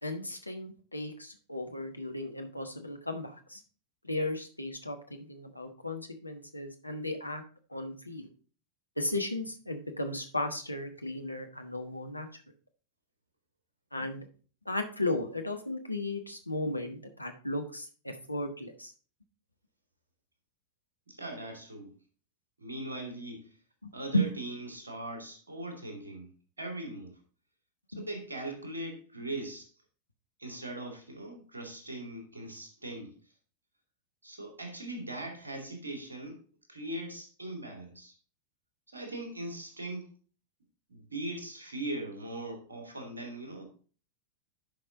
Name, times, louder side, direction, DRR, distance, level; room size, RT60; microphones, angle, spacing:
voice 1, 0.0-3.6 4.0-7.4 7.7-8.3 9.0-12.3 13.9-14.3 14.6-18.9 24.1-24.3 27.9-28.0, left 1 dB, 85° left, 5 dB, 1.2 m, -35 dB
voice 2, 21.1-21.9 22.6-23.6 23.9-27.2 27.9-29.7 30.4-33.2 34.2-36.4 36.7-38.1 38.9-40.1 40.9-43.6, right 1 dB, 75° right, 3 dB, 2.3 m, -40 dB
10.5 x 5.5 x 3.8 m, 0.39 s
figure-of-eight pair, 90°, 0 cm